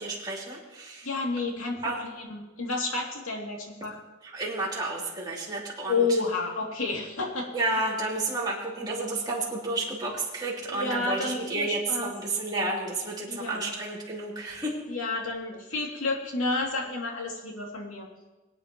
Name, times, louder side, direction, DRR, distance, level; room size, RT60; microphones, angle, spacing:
voice 1, 0.0-1.1 1.8-2.0 4.2-6.0 7.5-14.7, right 2 dB, 20° right, -6 dB, 3.1 m, -31 dB
voice 2, 1.0-4.0 5.9-7.5 10.7-12.1 13.3-13.7 14.9-18.1, left 3 dB, 90° left, -2 dB, 2.8 m, -30 dB
23.0 x 9.2 x 3.1 m, 1.1 s
head